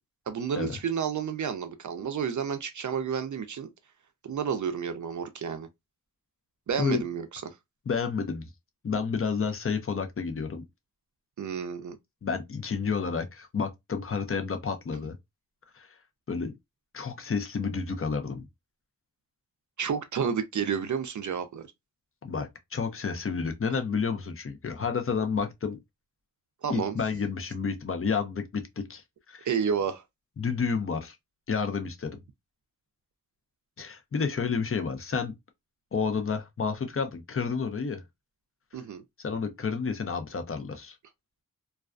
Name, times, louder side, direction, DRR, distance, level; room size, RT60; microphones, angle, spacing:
voice 1, 0.3-3.7 4.2-5.7 6.7-7.6 11.4-12.0 19.8-21.7 26.6-26.9 29.4-30.0 38.7-39.0, right 7 dB, 60° right, 0.4 m, -30 dB
voice 2, 7.9-8.5 8.8-10.7 12.2-15.2 15.7-15.9 16.3-16.6 16.9-18.5 22.2-25.8 26.7-29.5 30.4-31.2 31.5-32.2 33.8-35.4 35.9-38.0 39.2-41.0, left 5 dB, 40° left, 0.6 m, -30 dB
2.3 x 2.2 x 2.4 m
wide cardioid pair, 55°, 34 cm